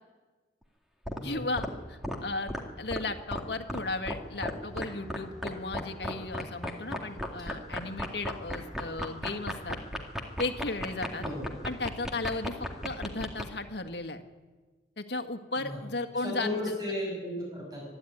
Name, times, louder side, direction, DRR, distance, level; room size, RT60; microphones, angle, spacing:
sound 1, 1.1-1.2 1.6-1.7 2.0-2.2 2.5-2.6 2.9-3.0 3.3-3.4 3.7-3.8 4.1-4.2 4.4-4.8 5.1-5.2 5.4-13.4, equal, 5° right, 2.2 m, -33 dB
voice 1, 1.2-2.5 2.8-9.8 10.4-11.2 11.6-12.5 12.8-14.2 15.0-16.5, left 2 dB, 70° left, 6 dB, 1.7 m, -35 dB
voice 2, 15.6-17.8, left 1 dB, 20° right, -2 dB, 6.0 m, -35 dB
25.5 x 11.5 x 9.5 m, 1.3 s
head